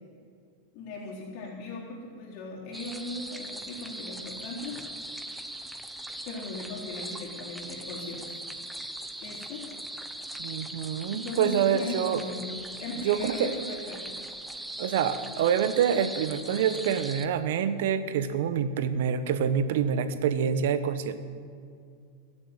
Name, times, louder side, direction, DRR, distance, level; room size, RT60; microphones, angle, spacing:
voice 1, 0.7-4.8 6.3-8.5 9.2-9.6 11.1-12.4 12.8-14.2, left 2 dB, 55° left, -4 dB, 3.8 m, -38 dB
sound 1, 2.7-17.3, right 1 dB, 5° right, 0.9 m, -40 dB
voice 2, 10.4-12.2 13.0-13.5 14.8-21.2, right 8 dB, 70° right, 11 dB, 1.1 m, -26 dB
21.0 x 7.7 x 8.0 m, 2.3 s
supercardioid pair, 130°, 0 cm